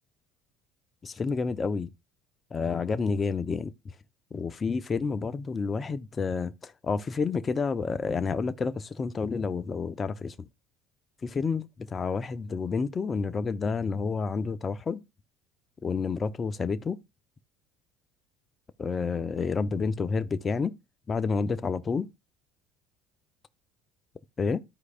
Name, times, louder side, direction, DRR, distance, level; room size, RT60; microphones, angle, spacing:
voice 1, 1.0-1.9 2.5-3.9 4.3-10.3 11.2-11.7 11.9-15.0 15.8-17.0 18.8-20.8 21.1-22.1 24.4-24.6, left 5 dB, 30° left, 0.8 m, -29 dB
14.0 x 4.8 x 2.5 m
supercardioid pair, 80°, 0 cm